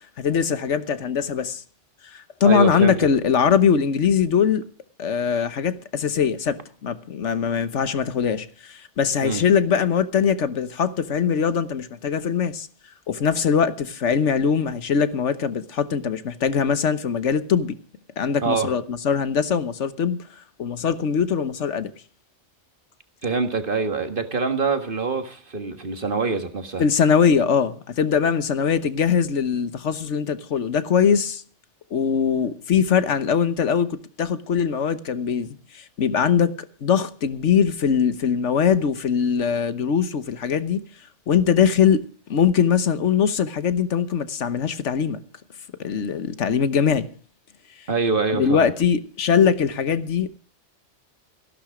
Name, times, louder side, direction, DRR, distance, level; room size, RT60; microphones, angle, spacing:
voice 1, 0.2-1.6 2.0-4.6 5.0-12.7 13.1-17.7 18.2-20.2 20.6-21.9 26.8-31.4 31.9-40.8 41.3-45.2 45.8-47.1 48.4-50.3, left 7 dB, 80° left, 1.4 m, -21 dB
voice 2, 2.4-3.1 9.2-9.5 18.4-18.7 23.2-26.8 47.9-48.7, right 4 dB, 50° right, 1.8 m, -25 dB
15.5 x 12.0 x 5.0 m
omnidirectional pair, 1.2 m